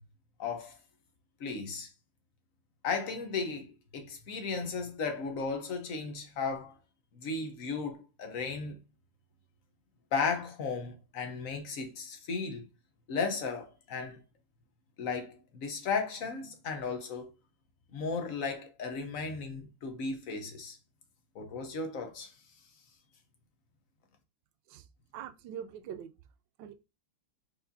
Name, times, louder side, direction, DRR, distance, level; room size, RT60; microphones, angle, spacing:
voice 1, 0.4-0.7 1.4-1.9 2.8-6.8 7.1-8.8 10.1-12.6 13.1-14.2 15.0-17.3 17.9-20.8 21.3-22.3, left 4 dB, 55° left, 1.0 m, -35 dB
voice 2, 25.1-26.1 26.6-26.7, right 9 dB, 75° right, 1.2 m, -43 dB
4.5 x 4.3 x 2.7 m
omnidirectional pair, 2.2 m